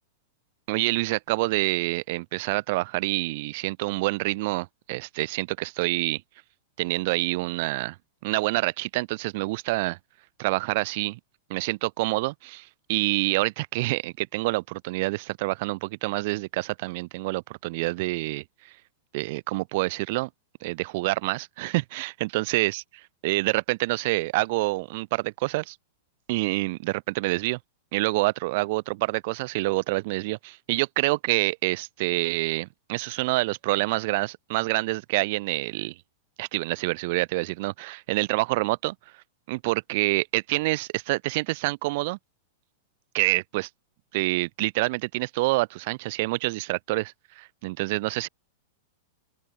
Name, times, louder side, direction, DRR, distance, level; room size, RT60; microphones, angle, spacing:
voice 1, 0.7-6.2 6.8-8.0 8.2-10.0 10.4-11.2 11.5-18.4 19.1-20.3 20.6-22.8 23.2-25.8 26.3-27.6 27.9-35.9 36.4-38.9 39.5-42.2 43.1-43.7 44.1-48.3, right 22 dB, 50° right, 3.0 m, -27 dB
open air
supercardioid pair, 145°, 0 cm